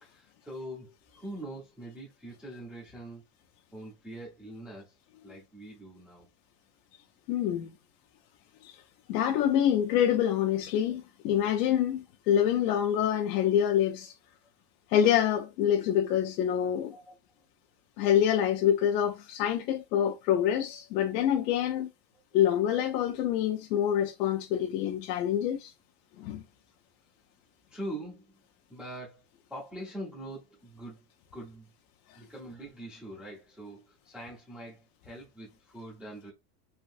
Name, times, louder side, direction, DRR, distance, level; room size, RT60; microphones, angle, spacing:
voice 1, 0.0-3.2 3.7-4.9 5.2-6.3 16.9-17.1 27.7-28.2 28.7-31.0 31.3-31.7 32.1-36.3, right 1 dB, 5° right, 0.4 m, -43 dB
voice 2, 7.3-7.7 8.6-8.8 9.1-14.1 14.9-16.9 18.0-21.9 22.3-25.7 26.2-26.4, left 10 dB, 70° left, 0.7 m, -26 dB
3.5 x 2.6 x 2.5 m
supercardioid pair, 160°, 50 cm